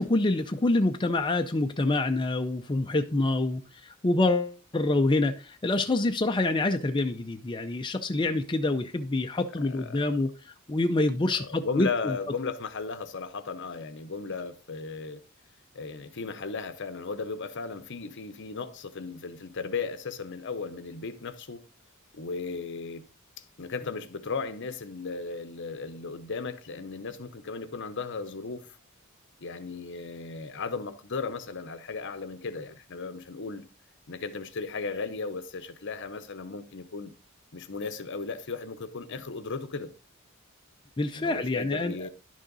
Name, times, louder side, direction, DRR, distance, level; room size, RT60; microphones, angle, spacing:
voice 1, 0.0-10.3 10.7-12.1 41.0-42.1, left 2 dB, 20° left, 0.5 m, -26 dB
voice 2, 9.6-10.0 11.4-15.2 15.7-21.6 22.1-23.0 23.6-28.7 29.4-33.7 34.1-37.1 37.5-39.9 41.1-42.1, left 4 dB, 60° left, 0.9 m, -36 dB
11.0 x 6.4 x 3.9 m
head